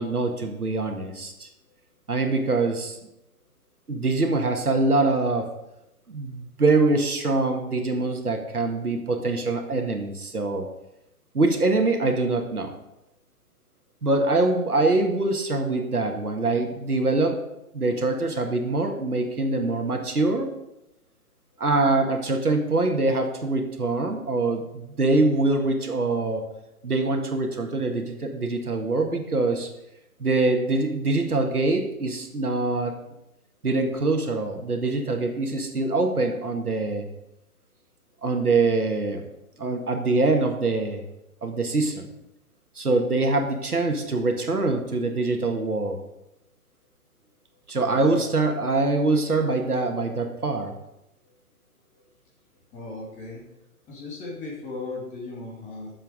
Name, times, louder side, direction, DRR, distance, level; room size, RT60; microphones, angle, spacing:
voice 1, 0.0-1.5 2.1-3.0 3.9-5.5 6.1-10.7 11.3-12.7 14.0-17.4 17.7-20.5 21.6-26.5 26.8-29.7 30.2-33.0 33.6-37.1 38.2-39.2 39.6-41.0 41.4-42.1 42.8-46.0 47.7-50.7, right 2 dB, 90° right, 4 dB, 1.7 m, -24 dB
voice 2, 47.8-48.2 52.7-53.4 53.9-55.9, left 3 dB, 15° left, -3 dB, 2.5 m, -37 dB
9.6 x 7.3 x 4.9 m, 0.88 s
figure-of-eight pair, 135°, 44 cm